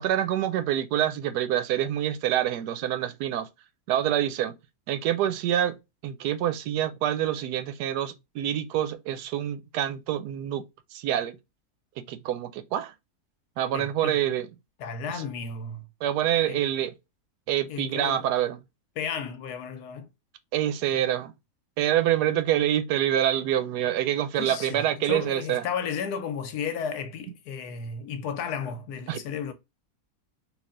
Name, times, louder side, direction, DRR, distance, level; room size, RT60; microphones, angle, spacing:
voice 1, 0.0-3.5 3.9-4.5 4.9-5.8 6.0-10.6 10.9-11.4 12.0-12.9 13.6-14.5 15.1-15.3 16.0-16.9 17.5-18.6 20.5-21.3 21.8-25.6 29.1-29.2, right 11 dB, 85° right, 1.1 m, -26 dB
voice 2, 13.7-14.2 14.8-15.9 16.5-16.6 17.7-18.2 19.0-20.1 24.4-29.5, left 6 dB, 80° left, 1.2 m, -33 dB
3.2 x 2.8 x 3.7 m
omnidirectional pair, 1.7 m